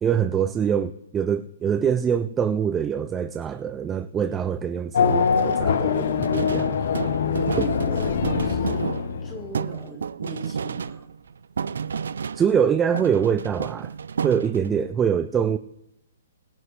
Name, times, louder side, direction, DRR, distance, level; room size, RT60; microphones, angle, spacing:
voice 1, 0.0-6.8 7.6-7.7 12.4-13.9 14.2-15.6, right 8 dB, 10° right, 9 dB, 0.4 m, -24 dB
Race car auto racing / Accelerating revving vroom, 4.9-9.6, left 6 dB, 60° left, 0.9 m, -23 dB
sound 1, 6.2-12.7 12.9-14.8, right 6 dB, 80° right, 0.5 m, -31 dB
voice 2, 7.5-11.1, right 1 dB, 10° left, 4 dB, 1.7 m, -38 dB
22.0 x 7.9 x 3.3 m, 0.87 s
hypercardioid pair, 165°, 0 cm